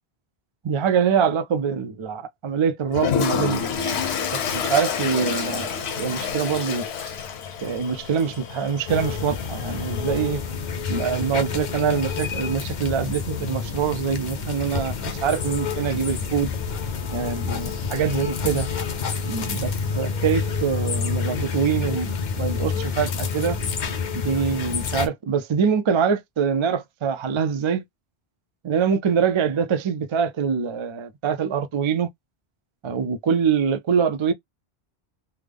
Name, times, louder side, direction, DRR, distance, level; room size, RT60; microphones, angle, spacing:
voice 1, 0.6-3.7 4.3-6.8 7.6-10.4 10.9-16.5 17.1-18.7 19.2-23.6 24.1-27.8 28.6-32.1 32.8-34.3, right 6 dB, 50° right, 0.3 m, -24 dB
Toilet flush, 2.9-10.4, left 6 dB, 90° left, 1.0 m, -29 dB
sound 1, 8.9-25.1, left 5 dB, 50° left, 0.7 m, -28 dB
3.5 x 2.0 x 3.4 m
omnidirectional pair, 1.1 m